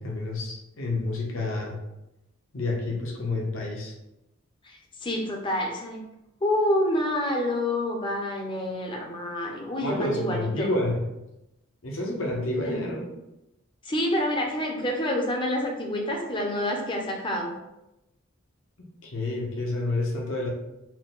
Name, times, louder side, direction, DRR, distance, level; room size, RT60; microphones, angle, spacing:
voice 1, 0.0-1.8 2.5-3.9 9.8-11.1 11.8-13.1 18.8-20.5, left 2 dB, 70° left, -1 dB, 0.9 m, -29 dB
voice 2, 4.6-6.0 6.4-10.7 12.6-12.9 13.8-17.5, left 1 dB, 25° left, 1 dB, 0.6 m, -28 dB
4.4 x 2.2 x 3.8 m, 0.92 s
head